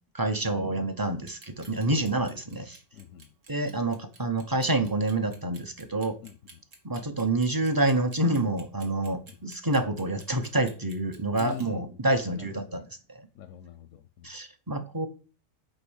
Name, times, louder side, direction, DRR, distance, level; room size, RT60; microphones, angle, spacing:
voice 1, 0.1-2.8 3.5-6.2 6.8-13.3 14.2-15.1, right 2 dB, 20° right, 0.7 m, -28 dB
Clock, 1.2-11.7, right 3 dB, 90° right, 2.0 m, -52 dB
voice 2, 2.9-3.3 6.2-6.4 9.3-9.4 11.4-12.0 12.3-12.8 13.3-14.3, left 10 dB, 90° left, 1.0 m, -43 dB
6.3 x 5.2 x 6.3 m
omnidirectional pair, 1.3 m